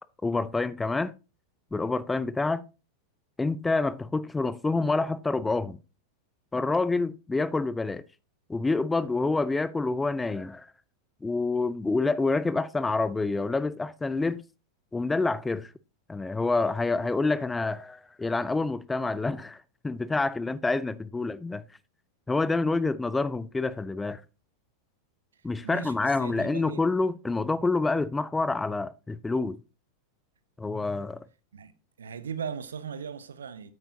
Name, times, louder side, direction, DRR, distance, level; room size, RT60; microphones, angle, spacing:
voice 1, 0.2-1.1 1.7-2.7 3.4-5.8 6.5-8.0 8.5-10.7 11.2-14.4 14.9-15.7 16.1-21.6 22.3-24.2 25.4-29.6 30.6-31.2, left 3 dB, 10° left, 0.4 m, -27 dB
voice 2, 25.6-26.8 31.5-31.7 32.0-33.7, right 7 dB, 70° right, 0.8 m, -38 dB
9.2 x 7.9 x 2.7 m
figure-of-eight pair, 90°, 0 cm